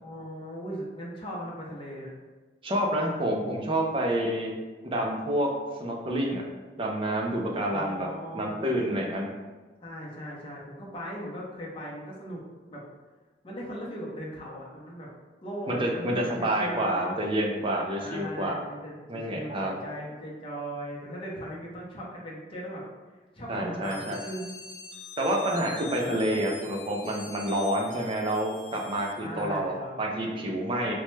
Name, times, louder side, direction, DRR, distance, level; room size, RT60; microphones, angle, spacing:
voice 1, 0.0-2.1 7.7-9.0 9.8-12.4 12.7-12.8 13.4-15.1 15.4-17.0 18.0-22.8 23.3-24.6 25.7-26.2 29.2-30.0, equal, 30° left, -4 dB, 0.6 m, -38 dB
voice 2, 2.6-4.5 4.8-5.5 5.8-6.4 6.8-8.1 8.3-9.3 15.7-18.6 19.1-19.8 23.5-24.2 25.2-30.9, right 1 dB, 30° right, 0 dB, 0.4 m, -28 dB
sound 1, 23.8-29.6, left 5 dB, 90° left, 0.5 m, -45 dB
3.0 x 2.2 x 3.1 m, 1.3 s
head